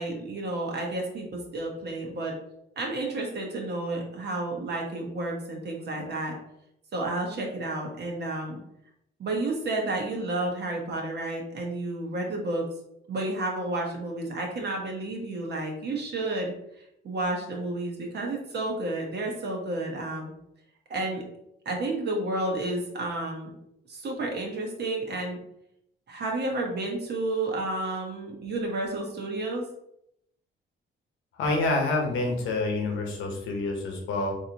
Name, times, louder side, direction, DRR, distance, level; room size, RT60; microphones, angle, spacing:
voice 1, 0.0-2.3 2.8-6.3 6.9-8.6 9.2-12.6 13.1-16.5 17.0-20.3 20.9-21.2 21.6-23.5 23.9-25.4 26.1-29.6, right 2 dB, 55° right, 0 dB, 1.1 m, -31 dB
voice 2, 31.4-34.4, left 2 dB, 80° left, 1 dB, 1.0 m, -27 dB
4.0 x 2.8 x 2.8 m, 0.78 s
cardioid pair, 90°, 20 cm